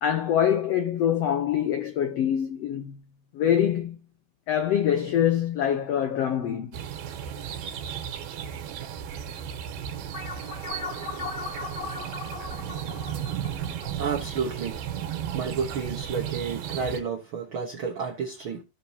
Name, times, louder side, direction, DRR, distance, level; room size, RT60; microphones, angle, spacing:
voice 1, 0.0-3.0 3.3-4.0 4.5-6.7, left 9 dB, 85° left, 1.4 m, -24 dB
sound 1, 6.7-17.0, right 9 dB, 70° right, 2.8 m, -34 dB
sound 2, 10.1-15.0, left 4 dB, 40° left, 1.7 m, -38 dB
voice 2, 14.0-14.8 15.3-18.6, right 6 dB, 90° right, 1.1 m, -31 dB
16.0 x 6.5 x 2.8 m
omnidirectional pair, 4.2 m